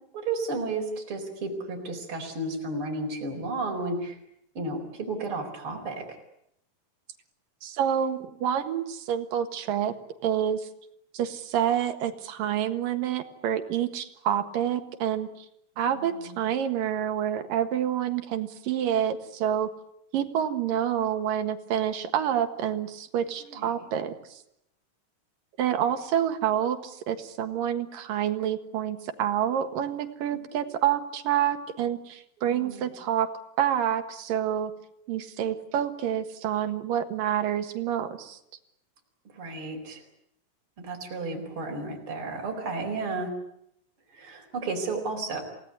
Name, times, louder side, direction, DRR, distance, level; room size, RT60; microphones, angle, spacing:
voice 1, 0.1-4.2 4.6-6.1 15.9-16.4 23.5-23.7 32.5-32.9 39.3-40.0 40.8-43.3 44.1-45.4, right 3 dB, 40° right, 1 dB, 5.2 m, -33 dB
voice 2, 7.6-9.9 10.2-10.7 11.1-15.5 15.8-19.7 20.1-24.1 25.6-33.3 33.6-34.7 35.1-38.4, right 10 dB, 85° right, 8 dB, 3.3 m, -28 dB
28.5 x 18.0 x 9.7 m, 0.77 s
omnidirectional pair, 3.9 m